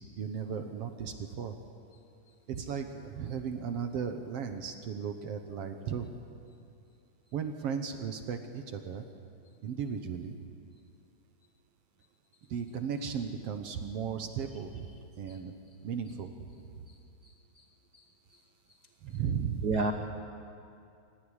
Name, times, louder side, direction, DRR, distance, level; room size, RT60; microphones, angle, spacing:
voice 1, 0.2-1.5 2.5-6.1 7.3-9.1 9.6-10.4 12.5-14.9 15.2-15.5 15.8-16.3 16.8-16.9 19.0-19.7, right 7 dB, 60° right, 7 dB, 1.9 m, -36 dB
voice 2, 17.2-17.6 17.9-18.0 18.3-18.4 19.6-19.9, right 3 dB, 80° right, 5 dB, 0.9 m, -33 dB
25.5 x 14.5 x 10.0 m, 2.5 s
omnidirectional pair, 3.5 m